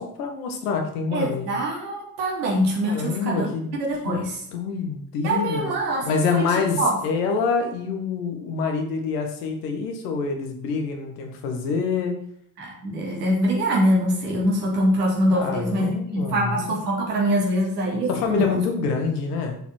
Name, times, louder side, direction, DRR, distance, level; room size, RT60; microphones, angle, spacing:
voice 1, 0.0-1.5 2.9-3.8 4.1-4.2 4.5-5.7 6.0-6.8 7.0-12.1 15.3-16.8 18.1-19.6, left 5 dB, 75° left, 4 dB, 2.2 m, -26 dB
voice 2, 1.1-4.4 5.2-6.5 6.8-6.9 12.6-18.6, equal, 80° right, -1 dB, 3.2 m, -24 dB
12.0 x 7.7 x 4.6 m, 0.69 s
figure-of-eight pair, 40°, 47 cm